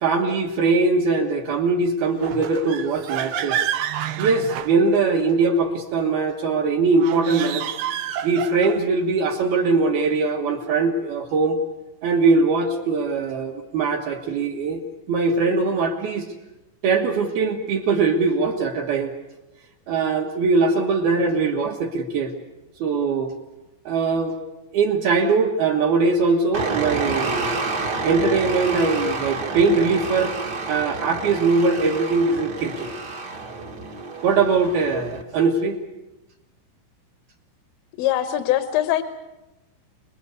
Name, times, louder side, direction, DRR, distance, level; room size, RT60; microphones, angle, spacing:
voice 1, 0.0-3.6 4.2-7.6 8.2-11.6 12.0-14.8 15.1-16.3 16.8-19.1 19.9-22.3 22.8-23.3 23.9-24.4 24.7-27.5 28.0-30.4 30.7-32.9 34.2-35.8, right 4 dB, 65° right, 1 dB, 2.6 m, -21 dB
sound 1, 2.2-5.3 6.9-8.9, right 10 dB, 85° right, 2.2 m, -29 dB
sound 2, 26.5-35.2, right 3 dB, 45° right, 1.3 m, -29 dB
voice 2, 38.0-39.0, left 13 dB, 80° left, 8 dB, 3.6 m, -22 dB
27.5 x 21.5 x 8.1 m, 1.0 s
omnidirectional pair, 5.9 m